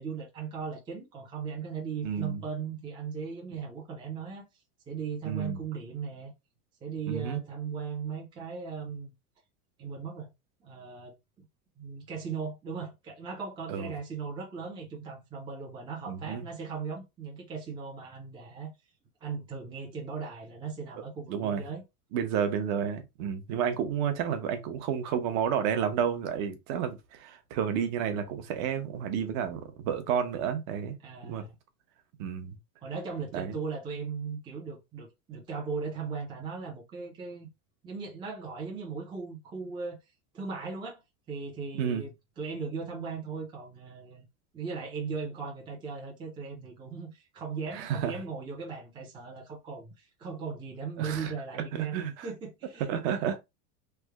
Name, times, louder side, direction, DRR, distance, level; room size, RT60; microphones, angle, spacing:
voice 1, 0.0-4.5 4.9-6.3 6.8-9.1 9.8-10.3 10.6-11.4 11.8-18.7 19.2-21.8 31.0-31.5 32.8-37.5 37.8-40.0 40.3-41.0 41.3-44.2 44.5-52.9, right 5 dB, 10° right, 0.5 m, -38 dB
voice 2, 2.0-2.4 5.2-5.6 7.1-7.4 13.7-13.9 16.1-16.5 21.3-21.6 22.1-31.0 31.2-31.4 32.2-32.6 33.3-33.5 41.7-42.0 47.7-48.1 51.0-51.3 51.7-52.3 52.9-53.4, right 8 dB, 45° right, 0.8 m, -31 dB
3.3 x 2.1 x 3.4 m
supercardioid pair, 150°, 47 cm